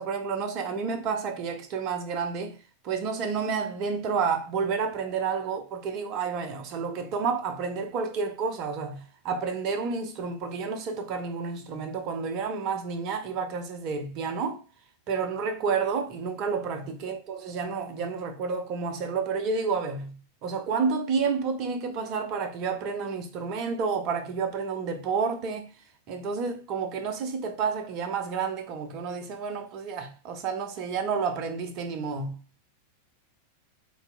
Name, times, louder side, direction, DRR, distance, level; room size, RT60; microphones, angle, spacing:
voice 1, 0.0-2.6 2.8-14.6 15.1-25.7 26.1-32.4, right 5 dB, 40° right, 0.8 m, -30 dB
4.1 x 2.9 x 3.4 m
figure-of-eight pair, 90°, 0 cm